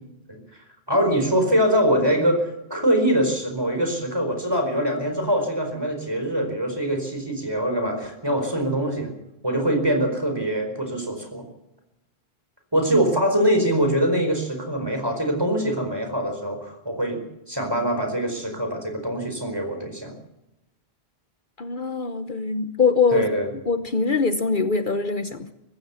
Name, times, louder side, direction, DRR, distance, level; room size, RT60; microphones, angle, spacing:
voice 1, 0.3-9.1 9.4-11.4 12.7-20.1 23.1-23.5, equal, 20° right, 5 dB, 4.7 m, -23 dB
voice 2, 21.6-23.3 23.7-25.5, left 4 dB, 50° left, 9 dB, 1.1 m, -23 dB
23.5 x 15.5 x 7.1 m, 0.93 s
omnidirectional pair, 1.1 m